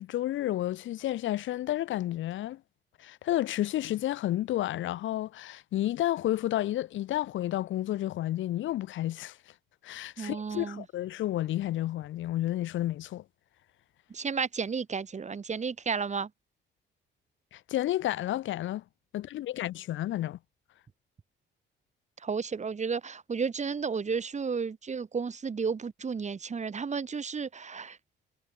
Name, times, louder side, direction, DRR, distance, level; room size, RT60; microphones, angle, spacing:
voice 1, 0.0-2.6 3.0-9.4 9.8-13.2 17.5-18.8 19.1-20.4, left 14 dB, 75° left, 0.9 m, -31 dB
voice 2, 10.2-10.8 14.1-16.3 22.2-28.0, right 5 dB, 35° right, 2.6 m, -32 dB
cardioid pair, 90°, 20 cm